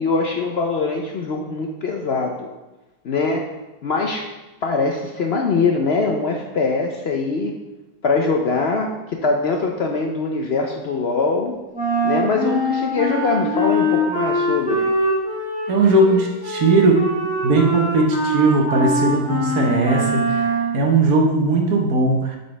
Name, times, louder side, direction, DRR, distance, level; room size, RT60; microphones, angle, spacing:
voice 1, 0.0-2.5 3.0-3.4 3.8-4.2 4.6-7.5 8.0-11.5 12.0-14.9, left 4 dB, 60° left, 1 dB, 0.7 m, -22 dB
Wind instrument woodwind instrument, 11.7-20.8, equal, 5° right, 2.2 m, -22 dB
voice 2, 15.7-17.0 17.4-20.5 20.7-22.4, right 2 dB, 70° right, 1 dB, 1.5 m, -18 dB
7.5 x 5.5 x 3.3 m, 1.1 s
omnidirectional pair, 1.6 m